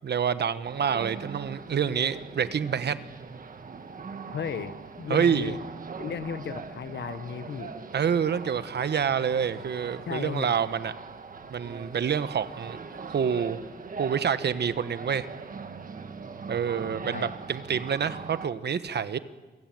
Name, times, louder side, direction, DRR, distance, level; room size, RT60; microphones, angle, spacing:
voice 1, 0.0-3.0 5.1-5.5 7.9-10.9 11.5-12.8 13.1-13.6 14.0-15.3 16.5-19.2, right 7 dB, 70° right, 13 dB, 1.1 m, -27 dB
sound 1, 0.6-18.5, right 5 dB, 50° right, 1.7 m, -41 dB
voice 2, 4.3-5.6 6.0-7.7 10.1-10.5 17.1-17.3, left 6 dB, 70° left, 13 dB, 1.2 m, -35 dB
27.0 x 17.0 x 9.2 m, 1.3 s
wide cardioid pair, 105°, 18 cm